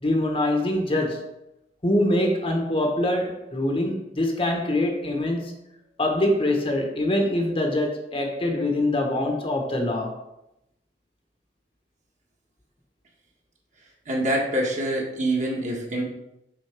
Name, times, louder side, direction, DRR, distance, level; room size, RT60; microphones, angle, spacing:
voice 1, 0.0-1.3 1.8-5.6 6.0-10.2, left 1 dB, 30° left, 3 dB, 1.1 m, -24 dB
voice 2, 14.0-16.0, right 1 dB, 45° right, -1 dB, 1.6 m, -25 dB
6.0 x 4.1 x 6.0 m, 0.87 s
head